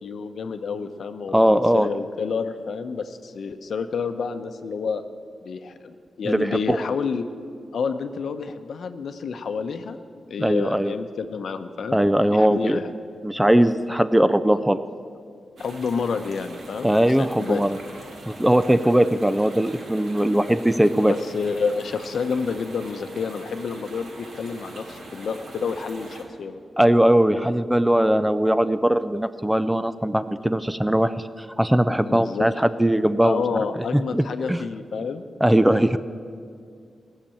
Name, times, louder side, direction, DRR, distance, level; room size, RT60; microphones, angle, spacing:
voice 1, 0.0-5.0 5.4-7.3 7.7-10.0 10.3-12.0 12.3-12.9 15.6-17.6 21.0-26.6 32.0-32.5 33.2-35.2, left 5 dB, 70° left, 9 dB, 0.8 m, -29 dB
voice 2, 1.3-1.9 6.2-6.8 10.4-10.9 11.9-12.8 13.2-14.8 16.8-17.8 18.3-21.1 26.8-31.1 31.6-33.4 34.1-34.6 35.4-36.0, right 1 dB, 5° right, 12 dB, 0.4 m, -20 dB
sound 1, 15.6-26.2, right 1 dB, 70° right, 2.5 m, -42 dB
18.0 x 6.7 x 8.6 m, 2.3 s
wide cardioid pair, 140°, 0 cm